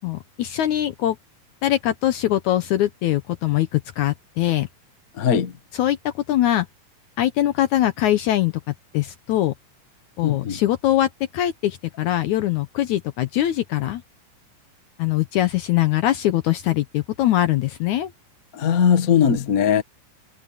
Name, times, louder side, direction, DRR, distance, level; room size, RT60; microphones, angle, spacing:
voice 1, 0.0-1.2 1.6-4.7 5.7-6.0 6.3-6.7 7.2-8.5 8.9-9.5 10.2-14.0 15.0-18.1, left 13 dB, 75° left, 1.9 m, -22 dB
voice 2, 5.2-5.5 10.2-10.6 18.5-19.8, left 8 dB, 50° left, 1.0 m, -19 dB
omnidirectional pair, 4.1 m